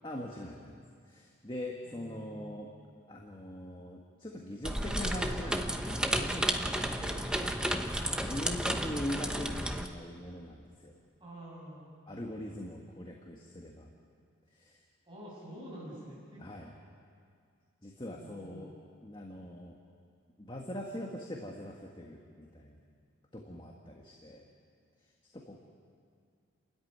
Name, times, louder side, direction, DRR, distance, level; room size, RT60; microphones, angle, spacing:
voice 1, 0.0-0.8 1.1-2.7 3.1-10.9 12.1-13.9 14.5-14.8 16.4-16.7 17.8-18.7 19.0-19.8 20.4-22.8 23.3-24.5 25.0-25.1 25.3-25.6, left 1 dB, 25° left, 0 dB, 1.7 m, -42 dB
voice 2, 1.8-2.6 7.0-7.1 11.2-12.1 15.1-16.4 18.1-18.7, right 1 dB, 25° right, -6 dB, 6.4 m, -48 dB
sound 1, 4.6-9.9, right 1 dB, 5° right, 0.9 m, -32 dB
29.0 x 14.0 x 9.6 m, 2.3 s
head